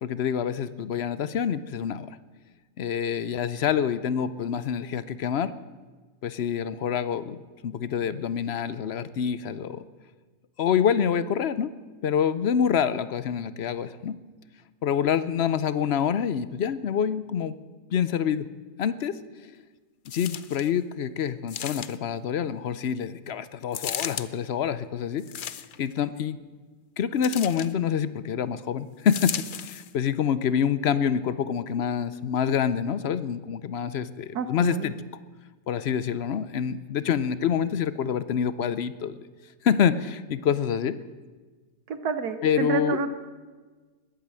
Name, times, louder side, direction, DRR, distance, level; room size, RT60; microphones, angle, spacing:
voice 1, 0.0-2.2 2.8-5.5 6.2-9.8 10.6-11.7 12.0-14.2 14.8-17.6 17.9-18.5 18.8-19.2 19.4-19.5 20.1-25.3 25.8-26.4 27.0-35.0 35.7-39.2 39.6-41.0 42.4-43.0, left 8 dB, 60° left, 14 dB, 0.7 m, -26 dB
sound 1, 20.1-20.7 21.5-22.2 23.7-24.3 25.2-25.9 27.2-27.7 29.1-29.9 30.6-30.7, left 9 dB, 90° left, 0.4 m, -35 dB
voice 2, 34.3-34.9 41.9-43.2, right 4 dB, 85° right, 9 dB, 1.5 m, -29 dB
20.5 x 8.8 x 7.6 m, 1.4 s
omnidirectional pair, 1.6 m